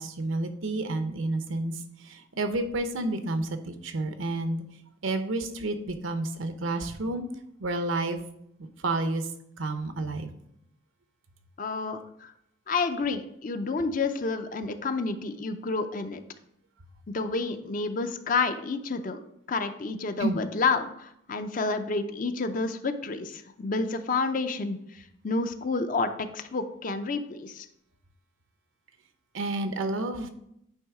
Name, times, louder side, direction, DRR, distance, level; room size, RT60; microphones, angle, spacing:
voice 1, 0.0-4.6 5.0-7.3 7.6-8.2 8.6-9.3 9.6-10.3 20.2-20.4 29.3-30.3, right 2 dB, 75° right, 9 dB, 0.7 m, -30 dB
voice 2, 11.6-12.3 12.7-16.2 17.1-19.2 19.5-27.7, left 4 dB, 40° left, 8 dB, 0.5 m, -29 dB
9.1 x 3.1 x 4.8 m, 0.74 s
head